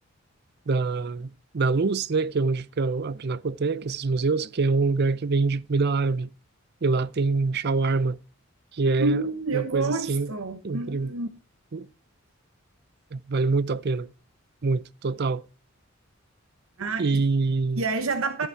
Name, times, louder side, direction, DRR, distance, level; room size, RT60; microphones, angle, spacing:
voice 1, 0.7-6.3 6.8-8.2 8.7-9.2 9.5-10.3 10.6-11.1 11.7-11.9 13.1-14.1 14.6-15.4 17.0-17.8, right 4 dB, 50° right, 0.5 m, -25 dB
voice 2, 9.0-11.3 16.8-17.2 17.7-18.5, right 3 dB, 80° right, 1.0 m, -28 dB
13.5 x 5.8 x 4.6 m
head